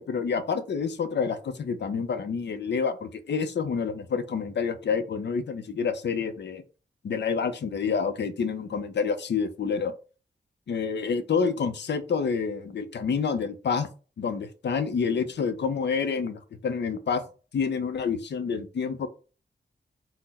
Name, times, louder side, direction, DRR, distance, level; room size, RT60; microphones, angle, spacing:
voice 1, 0.0-6.6 7.0-9.9 10.7-13.9 14.2-17.2 17.5-19.1, left 5 dB, 80° left, 10 dB, 0.6 m, -28 dB
4.1 x 2.0 x 4.1 m, 0.35 s
wide cardioid pair, 105°, 18 cm